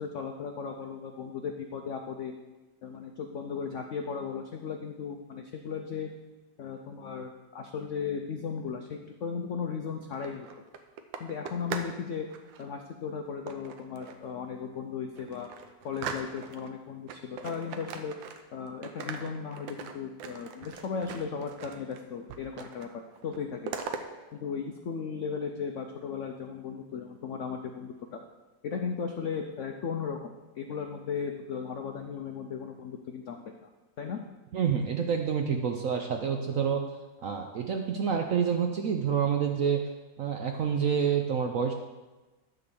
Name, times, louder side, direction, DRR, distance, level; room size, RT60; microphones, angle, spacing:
voice 1, 0.0-2.3 2.8-6.1 6.6-10.5 11.2-12.3 12.6-15.5 15.8-18.1 18.5-22.9 23.2-23.7 24.3-28.2 28.6-33.7 34.0-34.2, left 6 dB, 80° left, 4 dB, 0.6 m, -36 dB
sound 1, 10.0-12.0 12.3-12.7 13.5-14.3 14.7-14.8 15.2-16.7 17.1-18.6 18.8-22.0 22.3-22.9 23.2-24.0, right 6 dB, 85° right, 1.5 m, -40 dB
voice 2, 34.5-36.8 37.2-39.8 40.2-41.7, right 7 dB, 70° right, 4 dB, 0.8 m, -28 dB
11.0 x 3.9 x 6.9 m, 1.2 s
omnidirectional pair, 2.0 m